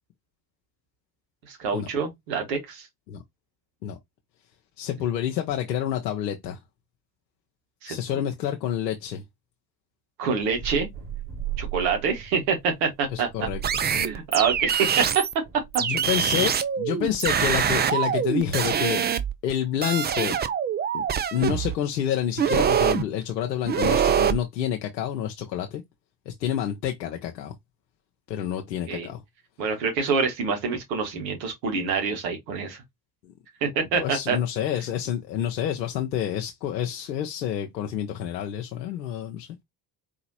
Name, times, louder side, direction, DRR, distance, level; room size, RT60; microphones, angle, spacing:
voice 1, 1.5-2.9 7.8-8.2 10.2-10.9 11.6-13.3 13.9-15.3 15.7-15.8 16.2-16.3 28.9-29.1 29.6-32.8 33.6-34.4, right 5 dB, 75° right, 1.6 m, -26 dB
voice 2, 4.8-6.6 7.9-9.2 13.1-13.6 15.8-19.0 19.4-20.4 20.9-21.0 21.3-25.8 26.3-27.5 28.3-29.2 33.2-33.3 33.8-39.6, left 10 dB, 85° left, 0.6 m, -28 dB
sound 1, 10.4-16.0, right 11 dB, 50° right, 2.6 m, -37 dB
sound 2, 13.6-15.3 15.7-19.5 19.8-21.8 22.4-23.0 23.7-24.4, right 8 dB, 20° right, 0.4 m, -24 dB
4.6 x 2.9 x 2.7 m
figure-of-eight pair, 50°, 50 cm